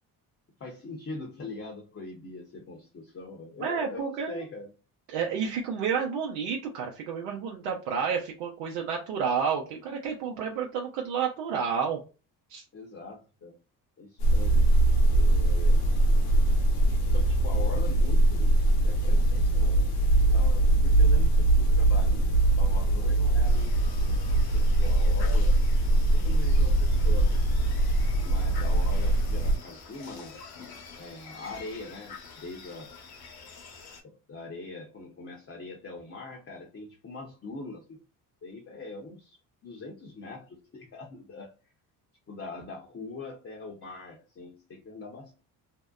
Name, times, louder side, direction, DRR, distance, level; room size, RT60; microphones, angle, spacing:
voice 1, 0.6-4.7 12.7-13.6 14.0-14.7 15.1-15.9 17.1-18.6 18.8-20.0 20.2-25.6 26.0-27.4 28.2-30.5 31.0-32.9 34.0-38.0 38.4-41.5 42.3-45.4, left 3 dB, 30° left, 0.8 m, -42 dB
voice 2, 3.6-4.4 5.1-12.0 12.5-12.6, right 6 dB, 85° right, 0.7 m, -30 dB
sound 1, 14.2-29.6, right 2 dB, 85° left, 0.9 m, -22 dB
sound 2, 23.4-34.0, left 5 dB, 50° left, 1.0 m, -47 dB
2.7 x 2.0 x 2.3 m
hypercardioid pair, 60°, 46 cm